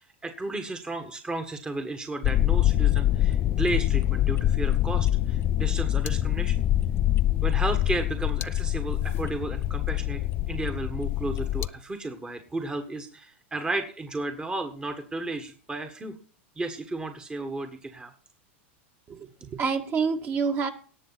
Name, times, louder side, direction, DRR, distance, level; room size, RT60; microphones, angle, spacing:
voice 1, 0.0-6.6 7.4-10.2 10.5-16.1 16.6-18.1, right 2 dB, 15° right, 6 dB, 1.5 m, -33 dB
sound 1, 2.2-11.7, left 13 dB, 35° left, 0.6 m, -25 dB
voice 2, 19.1-20.7, right 5 dB, 30° right, 5 dB, 1.9 m, -27 dB
18.5 x 6.9 x 4.1 m, 0.41 s
hypercardioid pair, 115°, 7 cm